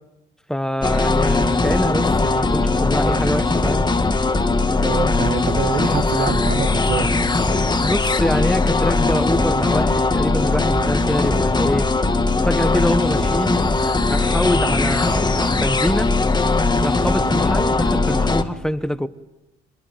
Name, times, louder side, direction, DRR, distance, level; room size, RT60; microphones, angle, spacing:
voice 1, 0.5-3.9 7.8-11.9 12.4-13.6 14.1-16.1 16.8-19.1, equal, 5° left, 1.3 m, -24 dB
sound 1, 0.8-18.4, left 3 dB, 20° left, 2.0 m, -19 dB
voice 2, 4.8-7.1, right 6 dB, 50° right, 1.5 m, -26 dB
25.5 x 20.5 x 8.9 m
cardioid pair, 90°, 20 cm